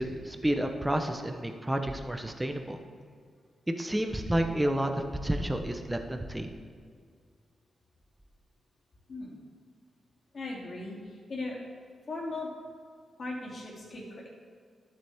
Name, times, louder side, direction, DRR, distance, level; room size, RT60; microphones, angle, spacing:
voice 1, 0.0-2.8 3.7-6.5, right 1 dB, 10° right, 5 dB, 0.8 m, -30 dB
voice 2, 10.3-11.0 11.3-11.6 12.1-12.5 13.2-14.3, left 2 dB, 50° left, -4 dB, 2.7 m, -37 dB
12.0 x 7.7 x 3.6 m, 2.1 s
cardioid pair, 100°, 0 cm